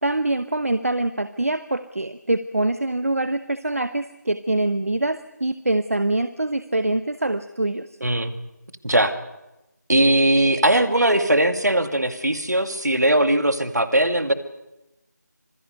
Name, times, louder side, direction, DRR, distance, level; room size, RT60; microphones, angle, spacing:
voice 1, 0.0-7.9, right 2 dB, 50° right, 13 dB, 0.9 m, -24 dB
voice 2, 8.0-8.3 8.8-9.1 9.9-14.3, right 1 dB, 65° right, 8 dB, 2.3 m, -19 dB
26.5 x 20.5 x 6.8 m, 0.95 s
figure-of-eight pair, 165°, 10 cm